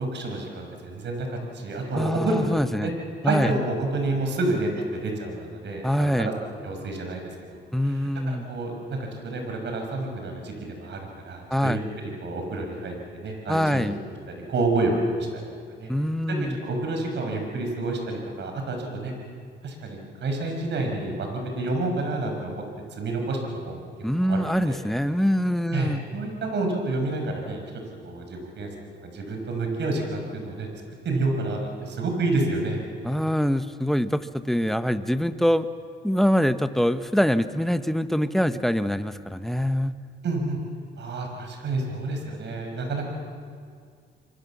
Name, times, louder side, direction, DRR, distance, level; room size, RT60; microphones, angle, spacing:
voice 1, 0.0-2.4 2.7-2.9 3.2-7.2 7.5-7.6 7.8-13.9 14.3-15.4 15.7-15.9 16.3-19.1 19.6-22.6 23.0-23.4 23.7-23.8 24.2-24.8 25.7-27.6 28.0-28.7 29.0-30.7 31.0-32.8 40.2-40.6 41.0-43.2, right 2 dB, 65° right, 3 dB, 5.8 m, -29 dB
voice 2, 1.9-2.9 3.2-3.5 5.8-6.3 7.7-8.4 11.5-11.8 13.5-14.0 15.9-16.6 24.0-26.0 33.0-35.7 36.0-40.0, equal, ahead, 11 dB, 1.1 m, -24 dB
28.0 x 23.0 x 7.3 m, 2.1 s
cardioid pair, 90°, 20 cm